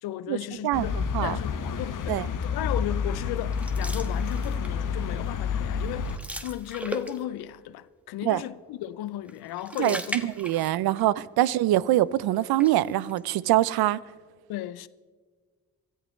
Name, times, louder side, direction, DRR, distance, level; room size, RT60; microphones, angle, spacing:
voice 1, 0.0-2.2 2.4-6.2 6.4-10.2 14.5-14.9, left 14 dB, 85° left, 0.5 m, -35 dB
voice 2, 0.6-1.4 2.1-2.3 8.2-8.4 9.8-14.0, right 14 dB, 80° right, 0.5 m, -24 dB
sound 1, 0.7-6.2, left 6 dB, 60° left, 0.9 m, -29 dB
sound 2, 3.5-4.9 5.3-5.5 5.8-7.5 9.3-11.1 11.4-11.5 12.3-13.2, equal, 5° right, 1.2 m, -38 dB
24.0 x 13.5 x 3.1 m
supercardioid pair, 45°, 36 cm